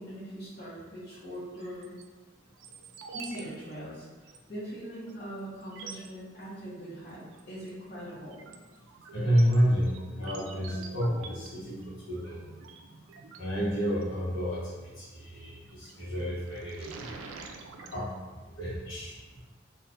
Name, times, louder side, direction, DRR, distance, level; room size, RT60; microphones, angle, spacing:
voice 1, 0.0-1.9 3.1-4.0 4.5-8.4, equal, 50° left, -11 dB, 0.9 m, -41 dB
sound 1, 1.6-2.0 2.6-3.4 3.7-3.8 4.3-4.4 5.1-5.2 5.6-6.1 7.3-7.7 8.1-14.0 15.6-16.0 16.4-18.0, right 4 dB, 80° right, 0.3 m, -46 dB
voice 2, 9.1-12.4 13.4-14.6 15.0-16.9 17.9-18.1 18.6-19.1, equal, 75° left, -9 dB, 1.1 m, -29 dB
2.5 x 2.5 x 3.4 m, 1.3 s
head